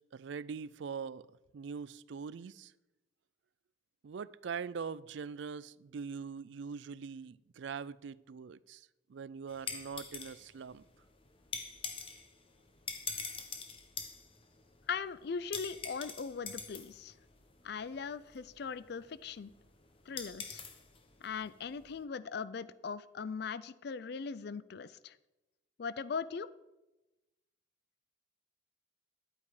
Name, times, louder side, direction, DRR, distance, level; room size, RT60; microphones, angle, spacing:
voice 1, 0.1-2.7 4.0-10.8, right 6 dB, 65° right, 0.4 m, -43 dB
sound 1, 9.5-22.0, left 5 dB, 30° left, 1.0 m, -46 dB
voice 2, 14.9-17.1 17.6-19.5 20.1-20.6 21.2-25.1 25.8-26.5, left 5 dB, 55° left, 0.4 m, -40 dB
11.5 x 8.5 x 4.9 m
head